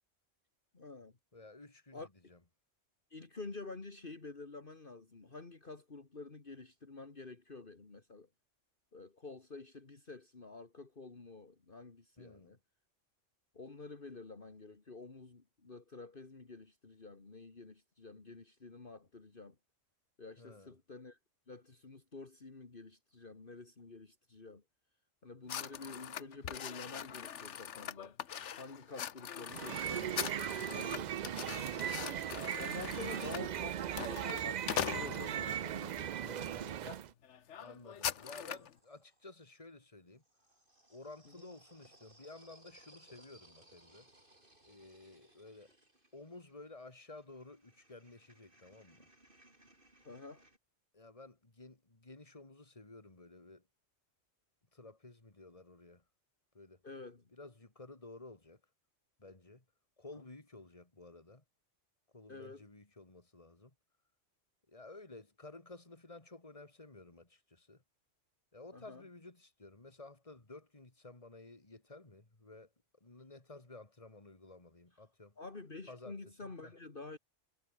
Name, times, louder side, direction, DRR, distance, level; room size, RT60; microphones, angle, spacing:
voice 1, 0.7-1.1 1.9-2.1 3.1-8.3 8.9-12.6 13.5-19.6 20.2-21.2 21.5-24.6 25.2-28.2 28.6-32.0 32.6-33.8 34.1-36.8 41.4-41.5 50.0-50.4 56.8-57.3 62.3-62.6 68.7-69.0 75.4-77.2, left 3 dB, 45° left, 2.3 m, -49 dB
voice 2, 1.3-2.0 2.3-2.4 12.2-12.6 20.4-20.8 33.0-33.3 37.6-40.2 40.9-44.1 44.6-45.7 46.1-49.1 50.9-53.7 54.7-56.0 56.5-56.8 57.3-58.6 59.2-59.6 60.0-61.4 62.1-63.7 64.7-67.8 68.5-72.7 73.0-75.4 75.9-76.2 76.6-76.7, left 2 dB, 25° left, 2.8 m, -54 dB
sound 1, 25.5-35.6 36.2-36.4 36.8-37.0 37.2-38.7, left 9 dB, 70° left, 1.2 m, -42 dB
sound 2, 29.5-37.1, right 10 dB, 70° right, 0.4 m, -38 dB
sound 3, 37.1-39.3 40.1-50.6, right 1 dB, 45° right, 6.6 m, -65 dB
omnidirectional pair, 1.3 m